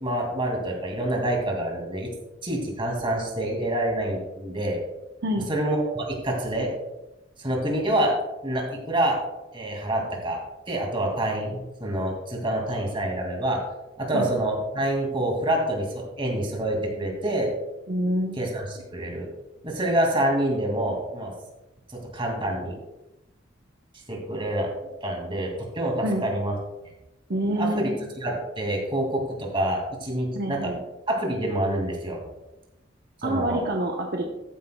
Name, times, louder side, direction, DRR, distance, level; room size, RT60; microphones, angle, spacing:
voice 1, 0.0-2.1 2.4-4.8 5.5-6.7 7.4-8.1 8.4-9.2 9.5-10.4 10.7-13.6 14.0-17.5 18.4-19.3 19.6-21.3 21.9-22.7 24.1-24.7 25.0-26.5 27.6-27.9 28.2-30.7 31.1-32.2 33.2-33.6, right 1 dB, 25° right, 1 dB, 2.3 m, -27 dB
voice 2, 17.9-18.4 26.0-26.3 27.3-28.0 30.3-30.8 33.2-34.2, right 1 dB, 55° right, 1 dB, 0.9 m, -26 dB
13.5 x 10.0 x 2.3 m, 0.97 s
head